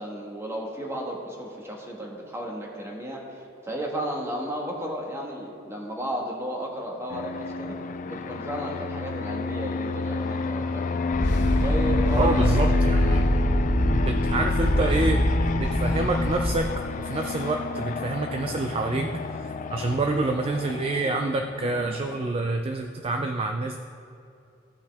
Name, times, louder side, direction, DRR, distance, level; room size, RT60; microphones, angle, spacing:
voice 1, 0.0-7.8 8.0-11.0 11.6-12.8, right 1 dB, 15° right, -1 dB, 1.3 m, -34 dB
Fixed-wing aircraft airplane, 7.1-22.3, left 4 dB, 45° left, 0.3 m, -31 dB
sound 1, 11.1-16.6, equal, 65° left, 0.9 m, -23 dB
voice 2, 12.2-13.2 14.0-15.2 15.5-16.7 17.0-19.2 19.7-23.8, right 3 dB, 30° right, 4 dB, 0.4 m, -27 dB
15.5 x 5.5 x 3.4 m, 2.6 s
head